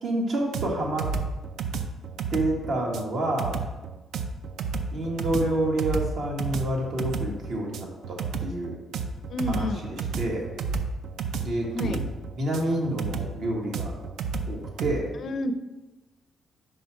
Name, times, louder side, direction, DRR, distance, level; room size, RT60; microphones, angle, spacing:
voice 1, 0.0-1.1 2.3-3.5 4.9-8.8 9.5-10.4 11.4-12.0 12.4-14.0 14.5-15.0, right 1 dB, 65° right, -1 dB, 1.5 m, -28 dB
sound 1, 0.5-14.9, right 5 dB, 80° right, 0.4 m, -32 dB
voice 2, 9.3-9.8 11.7-12.0 15.2-15.5, left 2 dB, 60° left, 10 dB, 0.4 m, -29 dB
5.4 x 4.9 x 4.5 m, 1.1 s
cardioid pair, 110°, 0 cm